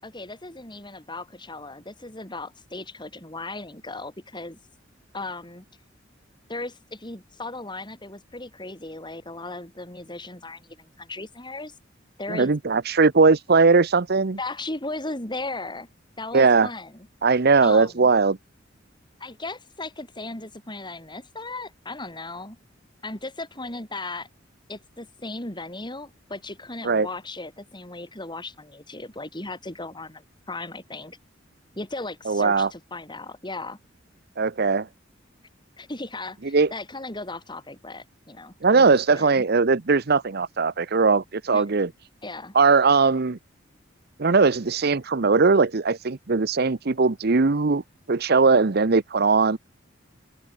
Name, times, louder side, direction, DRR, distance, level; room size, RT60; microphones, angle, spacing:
voice 1, 0.0-4.6 5.1-5.7 6.5-11.8 12.2-12.5 14.4-15.9 16.2-17.1 17.6-18.1 19.2-22.6 23.0-24.3 24.7-31.2 31.8-33.8 35.8-39.4 41.5-41.6 42.2-42.5, left 2 dB, 25° left, 7.4 m, -36 dB
voice 2, 12.3-14.4 16.3-16.7 17.2-18.4 26.8-27.1 32.3-32.7 34.4-34.9 36.5-36.7 38.6-41.9 42.5-43.4 44.2-47.8 48.1-49.6, right 4 dB, 55° right, 0.8 m, -19 dB
head